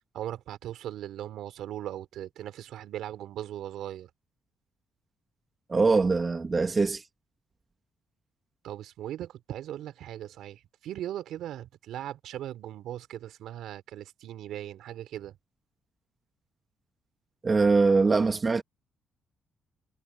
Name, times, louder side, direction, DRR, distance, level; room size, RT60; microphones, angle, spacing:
voice 1, 0.1-4.1 8.6-15.4, right 12 dB, 80° right, 3.9 m, -39 dB
voice 2, 5.7-7.0 17.4-18.6, right 4 dB, 30° right, 2.8 m, -23 dB
cardioid pair, 90°, 0 cm